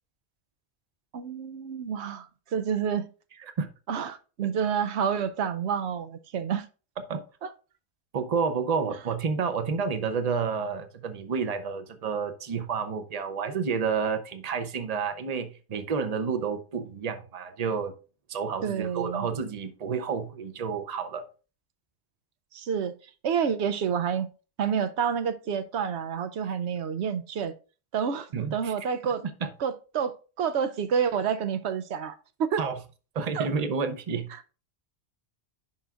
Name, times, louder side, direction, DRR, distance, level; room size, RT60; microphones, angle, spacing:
voice 1, 1.1-3.1 3.9-6.7 7.4-7.5 18.6-19.3 22.5-22.9 23.2-24.3 24.6-27.5 27.9-29.2 29.6-32.6 33.3-33.5 34.3-34.4, right 7 dB, 80° right, 0.9 m, -29 dB
voice 2, 8.1-17.9 18.3-21.3 28.3-28.7 29.0-29.1 29.4-29.5 32.6-32.8 33.1-34.3, right 5 dB, 40° right, 0.8 m, -30 dB
9.6 x 5.6 x 2.4 m
omnidirectional pair, 1.1 m